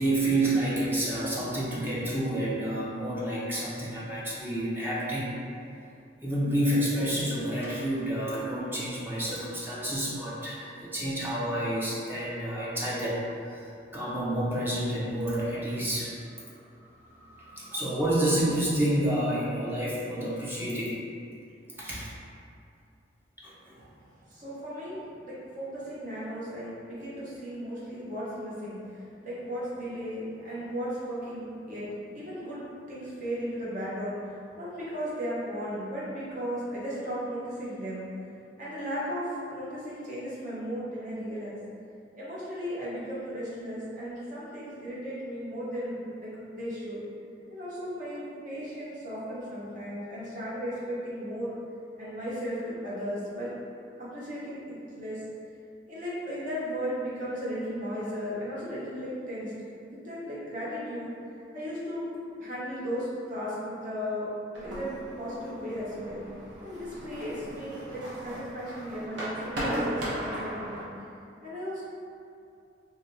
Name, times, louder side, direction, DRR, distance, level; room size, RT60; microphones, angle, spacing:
voice 1, 0.0-5.3 6.2-13.7 13.9-16.1 16.5-16.6 17.1-20.9 21.8-22.1 23.4-23.8, right 1 dB, 10° right, -7 dB, 0.6 m, -29 dB
voice 2, 24.2-32.6 32.9-38.1 38.6-41.6 42.2-47.0 47.5-51.5 52.0-53.5 54.0-55.2 55.9-59.5 59.8-61.1 61.5-62.1 62.4-64.3 64.5-66.2 66.6-70.9 71.4-71.8, equal, 45° right, -9 dB, 0.9 m, -36 dB
sound 1, 64.5-70.8, equal, 80° right, 0.8 m, -36 dB
3.3 x 2.7 x 2.7 m, 2.5 s
head